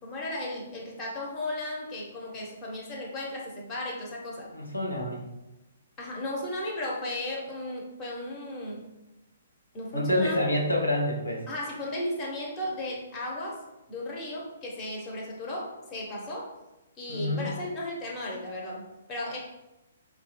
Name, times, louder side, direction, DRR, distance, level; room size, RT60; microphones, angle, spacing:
voice 1, 0.0-4.5 6.0-8.9 9.7-10.4 11.5-13.6 13.9-16.5 17.0-19.4, left 1 dB, 25° left, -2 dB, 1.0 m, -35 dB
voice 2, 4.5-5.2 9.9-11.4 17.1-17.5, left 1 dB, 85° left, -2 dB, 1.0 m, -27 dB
4.6 x 2.3 x 4.2 m, 1.0 s
figure-of-eight pair, 125°, 0 cm